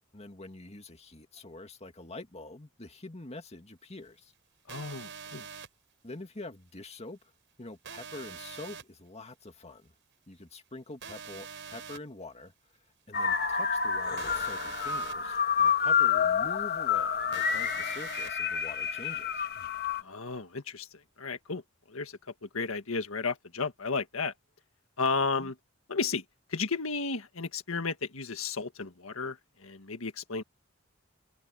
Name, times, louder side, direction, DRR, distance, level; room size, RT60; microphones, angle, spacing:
voice 1, 0.1-4.3 6.0-7.2 7.6-9.9 10.3-12.5 13.1-19.4 25.4-25.5, left 2 dB, 30° left, 2.2 m, -45 dB
voice 2, 4.7-5.4 20.0-20.9 21.2-21.6 21.9-24.3 25.0-25.6 25.9-26.2 26.5-30.4, left 4 dB, 85° left, 1.7 m, -33 dB
sound 1, 4.7-5.7 7.8-8.8 11.0-12.0 14.2-15.1 17.3-18.3, right 6 dB, 60° right, 7.7 m, -44 dB
sound 2, 13.1-20.0, left 7 dB, 50° left, 1.5 m, -28 dB
head